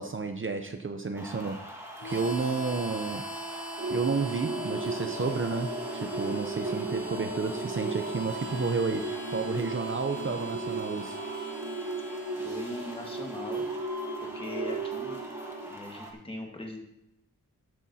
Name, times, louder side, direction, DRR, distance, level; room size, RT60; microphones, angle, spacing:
voice 1, 0.0-1.8 2.0-3.2 3.5-3.6 3.9-11.2, right 4 dB, 40° right, 6 dB, 0.7 m, -31 dB
sound 1, 1.1-16.1, equal, 10° right, 1.8 m, -44 dB
Harmonica, 2.0-14.6, right 1 dB, 70° left, 4.5 m, -42 dB
sound 2, 3.8-15.7, right 3 dB, 55° right, 2.4 m, -36 dB
voice 2, 12.3-13.6 14.2-15.2 15.7-16.8, left 1 dB, 15° left, 1 dB, 1.6 m, -40 dB
14.0 x 9.7 x 2.8 m, 0.85 s
wide cardioid pair, 130°, 33 cm